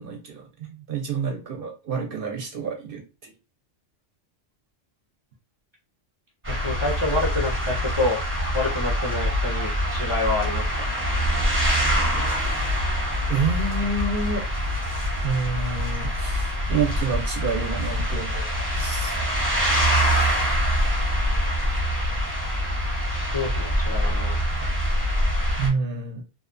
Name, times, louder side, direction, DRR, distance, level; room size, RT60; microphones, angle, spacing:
voice 1, 0.0-3.3 13.3-14.4 15.2-19.2 25.6-26.2, right 4 dB, 60° right, 3 dB, 0.6 m, -28 dB
sound 1, 6.4-25.7, equal, 15° right, 0.6 m, -24 dB
voice 2, 6.5-8.2 8.5-10.9 23.3-24.4, left 2 dB, 40° left, -2 dB, 0.4 m, -27 dB
2.6 x 2.1 x 2.4 m, 0.31 s
omnidirectional pair, 1.2 m